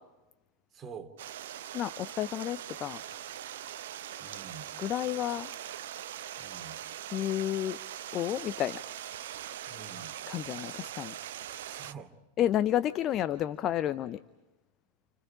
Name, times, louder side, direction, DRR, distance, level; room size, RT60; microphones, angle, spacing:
voice 1, 0.7-1.1 4.2-4.7 6.4-6.8 9.7-10.1 11.6-12.1, right 5 dB, 25° right, 4 dB, 2.9 m, -46 dB
Stream, 1.2-11.9, right 11 dB, 55° right, 0.8 m, -41 dB
voice 2, 1.7-3.0 4.8-5.5 7.1-7.8 8.1-8.8 10.3-11.1 12.4-14.2, left 12 dB, 30° left, 14 dB, 0.8 m, -30 dB
30.0 x 29.5 x 5.0 m, 1.0 s
figure-of-eight pair, 90°, 0 cm